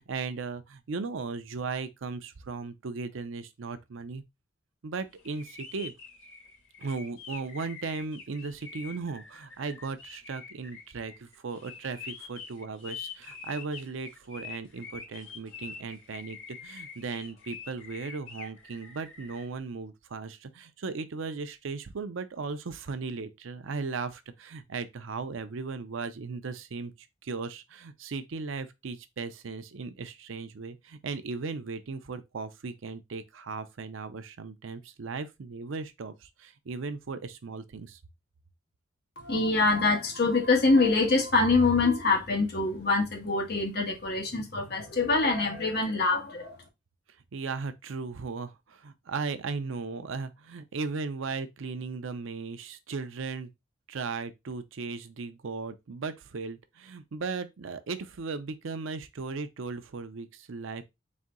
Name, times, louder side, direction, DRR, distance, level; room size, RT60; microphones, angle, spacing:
voice 1, 0.0-4.2 4.8-5.9 6.8-38.0 47.3-53.5 53.9-60.8, right 4 dB, 85° right, 0.5 m, -37 dB
sound 1, 5.2-19.5, left 6 dB, 90° left, 1.4 m, -45 dB
voice 2, 39.2-46.6, left 3 dB, 55° left, 1.2 m, -25 dB
4.2 x 2.7 x 3.6 m
head